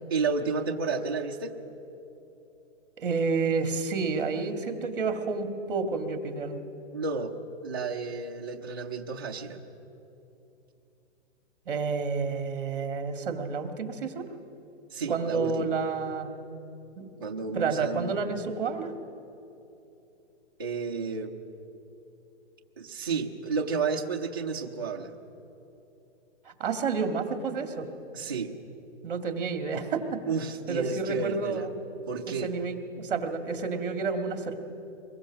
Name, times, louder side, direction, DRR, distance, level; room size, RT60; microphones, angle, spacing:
voice 1, 0.1-1.5 6.9-7.3 7.6-9.6 14.9-15.7 17.2-18.2 20.6-21.3 22.8-25.1 28.1-28.5 30.3-31.7 32.1-32.5, right 4 dB, 20° right, -2 dB, 0.5 m, -31 dB
voice 2, 3.0-6.6 11.7-14.3 15.1-16.3 17.0-17.1 17.5-18.9 26.5-27.9 29.0-30.2 30.7-31.7 32.4-34.6, right 4 dB, 45° right, 6 dB, 1.9 m, -30 dB
23.0 x 21.0 x 6.3 m, 2.9 s
hypercardioid pair, 175°, 36 cm